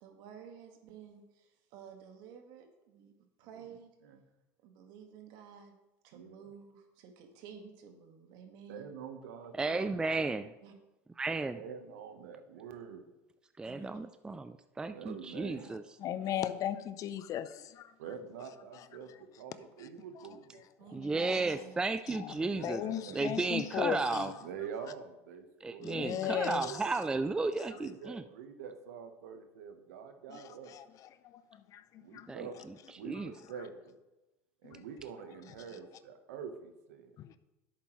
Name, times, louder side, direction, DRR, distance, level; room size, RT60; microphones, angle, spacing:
voice 1, 0.0-3.1 3.4-3.9 4.6-5.7 6.0-8.9 10.6-10.7 13.6-14.1 20.8-21.8, right 7 dB, 65° right, 1.7 m, -52 dB
voice 2, 3.4-4.3 6.1-6.4 8.7-10.0 11.5-13.1 14.9-15.7 18.0-20.6 22.5-23.3 24.4-26.9 27.7-30.8 32.0-34.0 34.6-37.2, right 7 dB, 85° right, 1.1 m, -46 dB
voice 3, 9.6-10.5 11.2-11.6 13.6-15.8 20.9-22.8 23.1-24.3 25.6-28.2 32.3-32.4 33.1-33.3, right 3 dB, 10° right, 0.3 m, -33 dB
voice 4, 16.0-17.9 21.2-21.4 22.1-24.3 25.8-26.8 30.3-30.8 31.2-31.4 31.7-32.3 34.6-34.8 37.2-37.4, left 10 dB, 45° left, 0.6 m, -37 dB
10.5 x 8.4 x 3.1 m
supercardioid pair, 105°, 8 cm